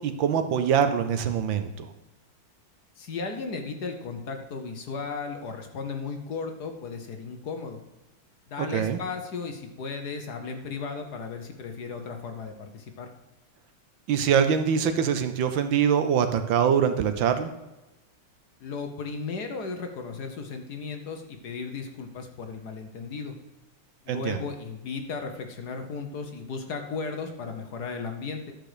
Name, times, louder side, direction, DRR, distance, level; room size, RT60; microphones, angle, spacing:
voice 1, 0.0-1.9 8.7-9.0 14.1-17.5 24.1-24.4, right 7 dB, 70° right, 9 dB, 1.4 m, -24 dB
voice 2, 3.0-7.8 8.5-13.1 18.6-23.4 24.0-28.5, left 4 dB, 55° left, 5 dB, 1.3 m, -35 dB
11.5 x 6.6 x 4.9 m, 1.0 s
omnidirectional pair, 2.3 m